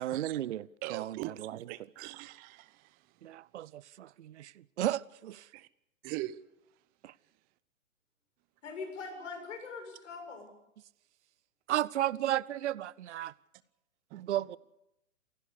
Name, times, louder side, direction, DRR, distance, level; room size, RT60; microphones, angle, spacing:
voice 1, 0.0-1.7 3.2-5.5 7.0-7.1 11.7-13.3 14.1-14.6, right 12 dB, 60° right, 0.8 m, -34 dB
voice 2, 0.8-2.7 5.5-5.7 6.0-6.4 14.1-14.2, right 17 dB, 20° right, 0.8 m, -41 dB
voice 3, 8.6-10.5, left 4 dB, 65° left, 7.3 m, -42 dB
28.5 x 16.0 x 8.5 m
figure-of-eight pair, 125°, 41 cm